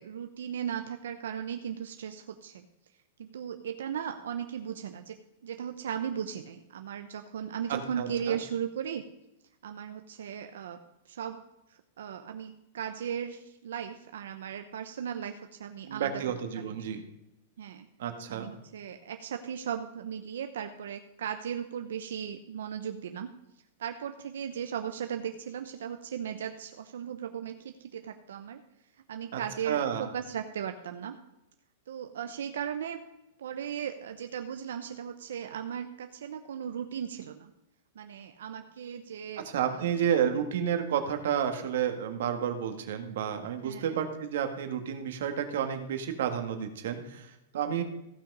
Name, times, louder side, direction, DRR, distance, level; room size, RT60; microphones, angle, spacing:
voice 1, 0.0-2.7 3.2-5.2 5.4-9.0 9.6-11.4 11.7-16.2 16.5-16.9 17.6-17.9 18.3-23.3 23.8-28.6 29.1-31.2 31.9-33.0 33.4-37.5 37.9-39.9 40.2-40.3 43.6-44.0 47.7-47.8, right 8 dB, 90° right, 7 dB, 0.9 m, -37 dB
voice 2, 7.7-8.4 15.9-17.0 18.0-18.5 29.3-30.1 39.4-47.8, right 8 dB, 55° right, 6 dB, 1.7 m, -31 dB
15.5 x 5.9 x 5.5 m, 0.87 s
supercardioid pair, 180°, 0 cm